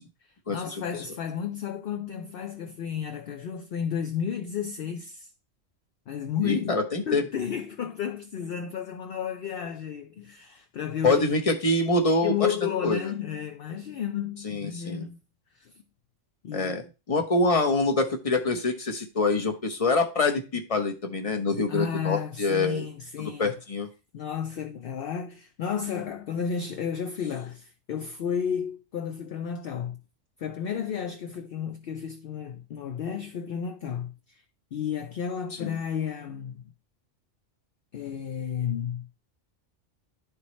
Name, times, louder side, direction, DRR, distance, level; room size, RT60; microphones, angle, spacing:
voice 1, 0.2-5.3 6.1-11.2 12.2-15.2 15.5-15.8 16.4-16.8 21.7-23.5 24.1-30.0 30.4-34.4 34.7-36.6 37.9-39.1, left 8 dB, 60° left, 0.7 m, -32 dB
voice 2, 6.4-7.2 11.0-12.5 12.8-13.1 14.4-15.1 16.5-22.9 23.2-23.9 35.6-35.8, left 3 dB, 30° left, 1.1 m, -25 dB
11.0 x 4.1 x 3.1 m
omnidirectional pair, 1.3 m